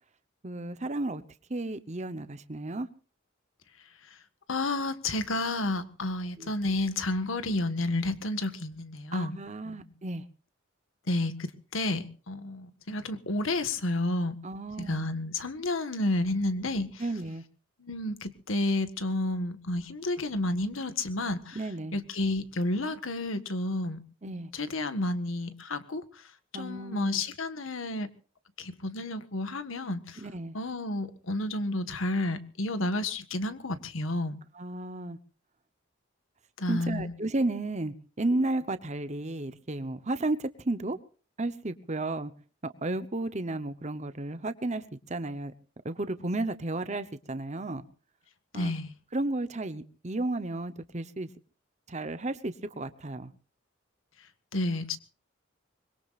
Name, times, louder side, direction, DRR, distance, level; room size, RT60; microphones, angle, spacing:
voice 1, 0.4-1.2 1.5-2.9 6.4-6.5 9.1-10.2 14.4-15.1 17.0-17.4 21.5-22.0 24.2-24.5 26.5-27.2 30.2-30.6 34.5-35.2 36.7-41.0 41.4-42.3 42.6-45.5 45.8-47.8 48.5-48.7 49.1-51.3 51.9-53.3, right 2 dB, 35° right, 0.9 m, -33 dB
voice 2, 4.5-9.4 9.6-9.9 11.1-14.4 14.8-17.0 17.8-21.6 21.9-24.0 24.3-26.0 26.5-28.1 28.6-30.2 30.5-34.3 36.6-37.1 48.5-48.9 54.5-55.0, left 2 dB, 85° left, 1.6 m, -31 dB
24.5 x 22.0 x 2.5 m
head